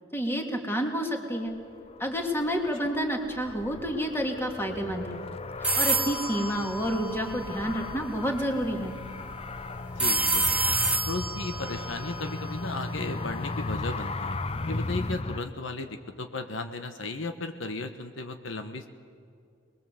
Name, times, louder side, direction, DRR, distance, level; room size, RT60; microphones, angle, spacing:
voice 1, 0.1-1.5 2.0-5.2 5.8-9.0, equal, 10° left, 2 dB, 2.5 m, -29 dB
Car, 1.4-15.4, left 2 dB, 30° left, 0.6 m, -36 dB
sound 1, 5.6-7.7 10.0-13.0, right 2 dB, 5° right, 2.2 m, -28 dB
voice 2, 10.0-10.8 11.1-14.4 14.7-18.9, left 2 dB, 75° left, 7 dB, 1.2 m, -35 dB
25.0 x 21.0 x 7.7 m, 2.3 s
head